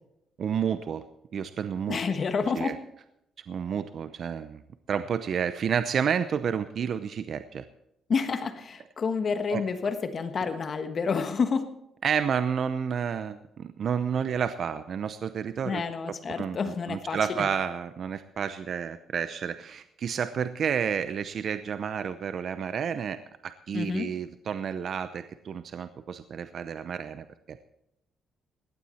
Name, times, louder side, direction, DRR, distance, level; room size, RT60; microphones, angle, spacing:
voice 1, 0.4-1.0 1.3-2.0 2.6-2.8 3.5-4.6 4.9-7.6 9.5-9.6 12.0-15.8 16.4-27.6, right 7 dB, 60° right, 11 dB, 0.7 m, -30 dB
voice 2, 1.9-2.8 8.1-11.7 15.6-17.5 23.7-24.1, left 5 dB, 45° left, 9 dB, 1.3 m, -29 dB
17.0 x 11.5 x 4.3 m, 0.82 s
cardioid pair, 90°, 0 cm